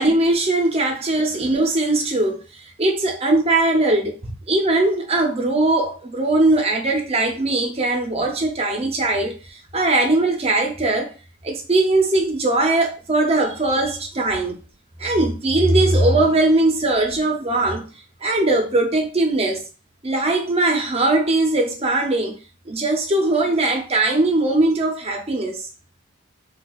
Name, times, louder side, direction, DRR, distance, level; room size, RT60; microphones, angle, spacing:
voice 1, 0.0-2.4 2.8-11.1 11.4-14.6 15.0-17.8 18.2-19.6 20.0-22.4 22.7-25.7, right 2 dB, 30° right, 0.6 m, -20 dB
4.1 x 2.3 x 2.3 m
head